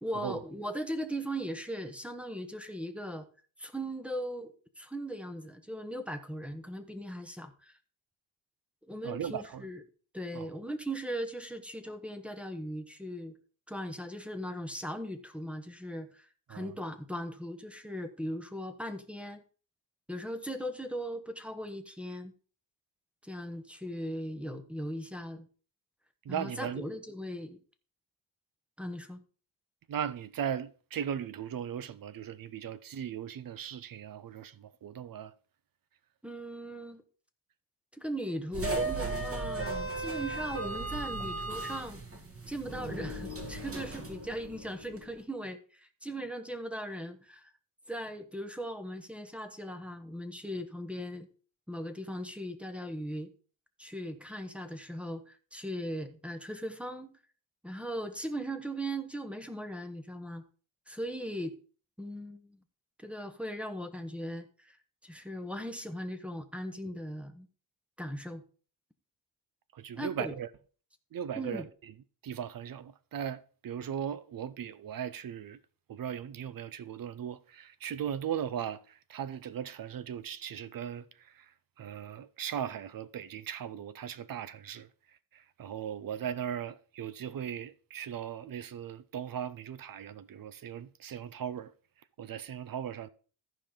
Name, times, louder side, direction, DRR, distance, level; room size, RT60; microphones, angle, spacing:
voice 1, 0.0-3.3 3.6-7.8 8.9-9.8 10.1-13.4 13.7-19.4 20.1-22.3 23.2-25.5 26.3-27.6 28.8-29.2 36.2-37.0 37.9-42.0 42.5-47.5 47.9-51.3 51.7-53.3 53.8-57.1 57.6-60.4 60.9-61.6 62.0-62.6 63.0-64.8 65.0-67.5 68.0-68.4 70.0-70.4 71.4-71.7, equal, 5° right, 0.9 m, -38 dB
voice 2, 9.0-9.7 10.3-10.5 16.5-16.7 26.2-26.8 29.9-35.3 69.7-70.5 71.1-71.9 72.2-75.6 75.9-84.9 85.3-91.7 92.2-93.1, right 9 dB, 50° right, 0.6 m, -38 dB
sound 1, 38.5-45.0, right 2 dB, 30° right, 2.0 m, -36 dB
14.0 x 5.1 x 3.7 m
cardioid pair, 100°, 43 cm